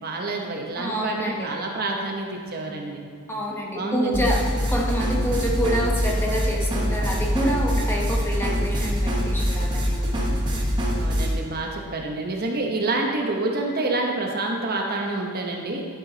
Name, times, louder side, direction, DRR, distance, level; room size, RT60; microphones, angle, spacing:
voice 1, 0.0-3.0 3.7-4.3 10.9-15.8, right 2 dB, 45° right, 1 dB, 1.0 m, -28 dB
voice 2, 0.8-1.6 3.3-10.5, equal, 10° left, -2 dB, 0.9 m, -27 dB
sound 1, 4.1-11.3, equal, 20° right, 1.2 m, -24 dB
11.0 x 6.1 x 4.0 m, 2.2 s
head